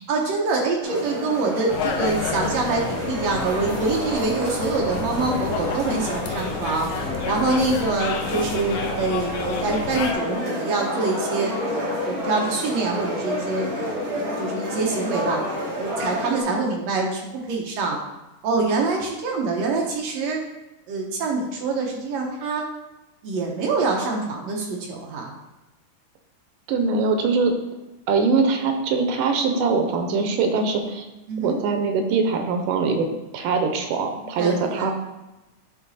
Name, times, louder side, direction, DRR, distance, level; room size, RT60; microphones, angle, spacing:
voice 1, 0.1-6.9 7.3-15.4 15.8-18.0 18.4-20.4 20.9-22.6 23.2-25.3 31.3-31.6 34.4-34.9, right 3 dB, 65° right, 0 dB, 1.8 m, -25 dB
sound 1, 0.8-16.4, left 1 dB, 40° right, 2.4 m, -29 dB
sound 2, 1.7-10.1, left 6 dB, 85° left, 2.3 m, -31 dB
voice 2, 26.7-27.5 28.1-31.1 31.4-33.1 33.3-34.9, right 4 dB, 85° right, 5 dB, 2.4 m, -22 dB
9.8 x 3.8 x 4.1 m, 1.0 s
omnidirectional pair, 3.8 m